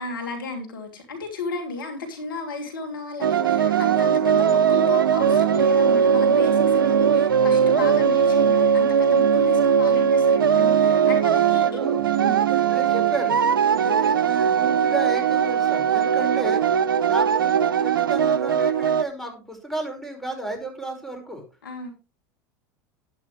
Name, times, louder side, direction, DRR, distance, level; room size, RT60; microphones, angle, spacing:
voice 1, 0.0-11.8 12.1-12.4 21.6-21.9, left 3 dB, 85° left, 3 dB, 2.8 m, -34 dB
sound 1, 3.2-19.0, right 7 dB, 85° right, 0.6 m, -19 dB
voice 2, 11.6-12.0 12.4-13.4 13.8-16.6 17.1-21.4, right 2 dB, ahead, 3 dB, 5.1 m, -33 dB
11.5 x 11.0 x 3.2 m, 0.29 s
hypercardioid pair, 85°, 11 cm